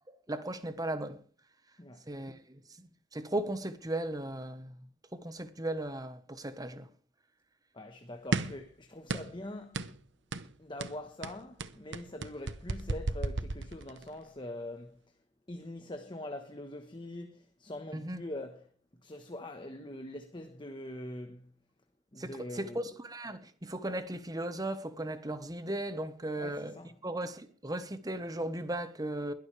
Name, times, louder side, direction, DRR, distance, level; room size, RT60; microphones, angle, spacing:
voice 1, 0.3-1.2 2.1-4.9 5.1-6.9 17.9-18.2 22.2-26.8 27.0-29.3, right 1 dB, 20° right, 1.2 m, -37 dB
voice 2, 7.7-9.8 10.6-15.0 15.5-18.7 19.0-21.5 22.1-22.9 26.4-26.9, left 1 dB, 25° left, 1.2 m, -43 dB
sound 1, 8.3-8.7 9.1-9.4 9.7-10.0 10.3-10.5 10.8-14.1, right 3 dB, 75° right, 0.9 m, -34 dB
21.5 x 11.5 x 3.4 m
head